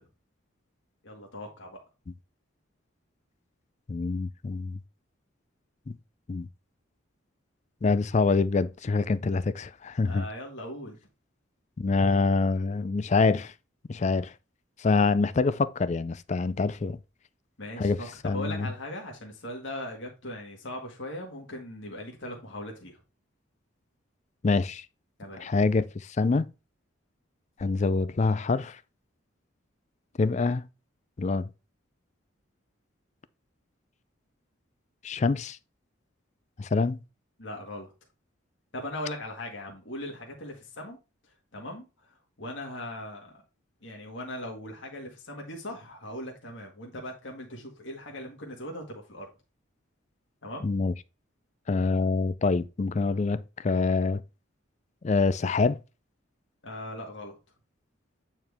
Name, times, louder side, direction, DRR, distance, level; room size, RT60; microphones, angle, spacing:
voice 1, 1.0-1.8 10.1-11.0 17.6-23.0 25.2-25.5 37.4-37.9 38.7-41.0 41.5-43.4 43.8-49.3 50.4-50.7 56.6-57.4, left 1 dB, 65° left, 1.8 m, -39 dB
voice 2, 3.9-4.8 5.9-6.0 6.3-6.5 7.8-10.2 11.8-13.5 13.9-14.3 14.8-17.0 17.8-18.0 18.2-18.7 24.4-24.8 25.4-26.5 27.6-28.8 30.2-30.6 31.2-31.5 35.0-35.6 36.6-37.0 50.6-50.9 51.7-54.2 55.0-55.8, left 4 dB, 35° left, 0.4 m, -25 dB
8.9 x 4.4 x 3.4 m
head